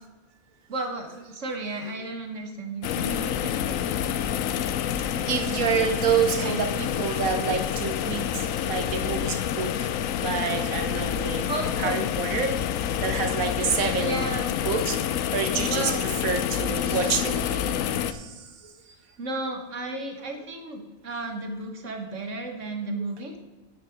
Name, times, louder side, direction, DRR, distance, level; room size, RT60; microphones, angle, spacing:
voice 1, 0.7-3.8 11.5-12.1 14.0-14.6 15.7-16.0 19.2-23.4, right 2 dB, 65° right, 4 dB, 1.5 m, -33 dB
sound 1, 2.8-18.1, left 9 dB, 75° left, 1.0 m, -28 dB
voice 2, 5.3-9.9 10.2-11.5 11.8-14.2 14.6-15.0 15.3-19.0 23.0-23.1, right 6 dB, 90° right, 7 dB, 1.5 m, -28 dB
9.6 x 8.7 x 5.1 m, 1.2 s
omnidirectional pair, 1.4 m